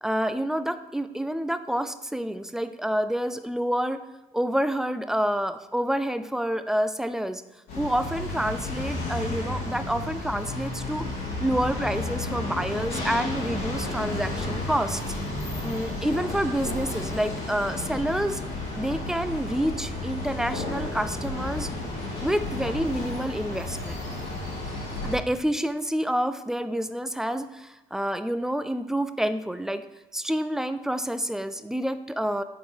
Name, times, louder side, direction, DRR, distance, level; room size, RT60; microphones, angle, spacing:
voice 1, 0.0-4.0 4.3-7.4 7.8-11.1 11.4-15.0 15.6-18.4 18.7-21.7 22.2-24.0 25.0-29.8 30.1-32.4, equal, 5° right, 11 dB, 0.4 m, -28 dB
sound 1, 7.7-25.2, left 2 dB, 75° left, 2.2 m, -32 dB
7.4 x 3.8 x 4.5 m, 1.1 s
supercardioid pair, 60°, 17 cm